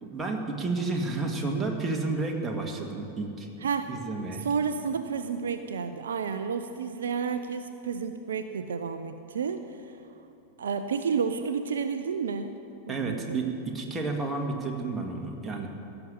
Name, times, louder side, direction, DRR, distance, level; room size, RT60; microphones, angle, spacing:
voice 1, 0.0-3.5 3.9-4.5 12.9-15.7, right 3 dB, 15° right, 1 dB, 1.9 m, -31 dB
voice 2, 3.6-3.9 4.3-10.0 10.6-12.6 12.9-13.4, right 6 dB, 65° right, 9 dB, 0.5 m, -31 dB
16.0 x 7.0 x 9.1 m, 2.8 s
figure-of-eight pair, 90°, 0 cm